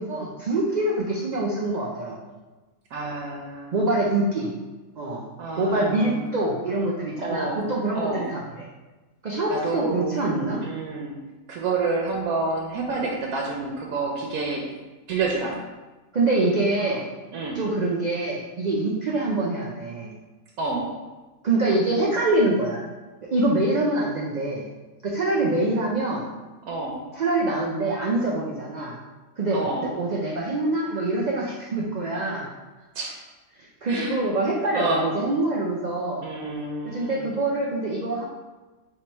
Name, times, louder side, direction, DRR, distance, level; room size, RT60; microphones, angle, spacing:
voice 1, 0.0-2.2 3.7-4.5 5.0-5.2 5.6-8.4 9.2-10.6 16.1-17.0 17.5-20.1 21.4-22.8 23.3-24.6 25.0-26.3 27.1-29.0 29.4-32.5 33.6-36.2 36.8-38.2, right 2 dB, 65° right, -3 dB, 0.4 m, -25 dB
voice 2, 2.9-3.8 5.4-6.4 7.2-7.6 7.9-8.3 9.5-10.1 10.6-11.2 11.5-14.6 15.1-15.6 17.3-17.6 20.6-20.9 26.7-27.0 29.5-29.9 32.9-33.2 33.8-34.2 34.7-35.0 36.2-37.3, right 3 dB, 90° right, -1 dB, 1.1 m, -28 dB
3.5 x 3.0 x 4.4 m, 1.2 s
omnidirectional pair, 1.5 m